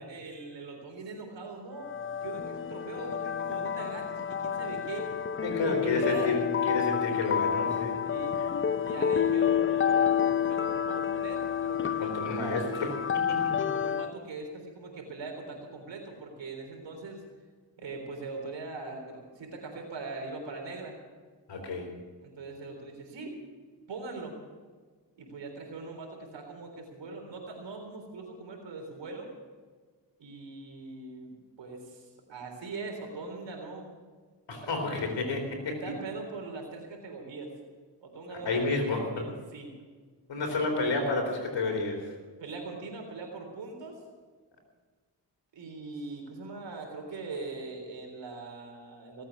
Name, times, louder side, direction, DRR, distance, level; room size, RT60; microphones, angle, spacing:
voice 1, 0.0-1.9 2.2-5.1 5.4-6.4 8.1-8.4 8.8-12.8 13.8-17.2 17.8-21.0 22.2-23.4 23.9-24.4 25.2-29.3 30.2-33.9 34.6-35.1 35.7-37.5 38.0-38.6 38.9-39.7 42.4-44.0 45.5-49.3, right 3 dB, 85° right, 2 dB, 3.9 m, -41 dB
sound 1, 1.8-14.1, left 8 dB, 30° left, 0.5 m, -29 dB
voice 2, 5.4-7.9 12.0-13.4 21.5-21.9 34.5-35.8 38.3-39.2 40.3-42.1, left 3 dB, 85° left, 3 dB, 4.0 m, -30 dB
19.0 x 8.5 x 8.3 m, 1.5 s
cardioid pair, 50°, 43 cm